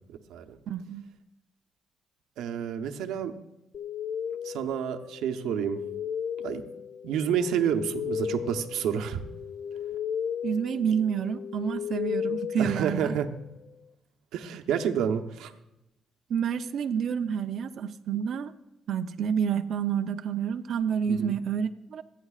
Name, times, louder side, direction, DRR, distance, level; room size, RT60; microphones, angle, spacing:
voice 1, 0.7-1.0 10.4-13.1 16.3-18.5 18.9-22.0, right 7 dB, 65° right, 7 dB, 0.6 m, -29 dB
voice 2, 2.4-3.3 4.4-5.8 6.4-6.6 7.0-9.2 12.6-13.3 14.3-15.5 21.1-21.4, right 8 dB, 90° right, 5 dB, 0.9 m, -29 dB
sound 1, 3.7-13.4, left 8 dB, 55° left, 0.4 m, -35 dB
26.0 x 9.3 x 2.4 m, 0.91 s
cardioid pair, 90°, 0 cm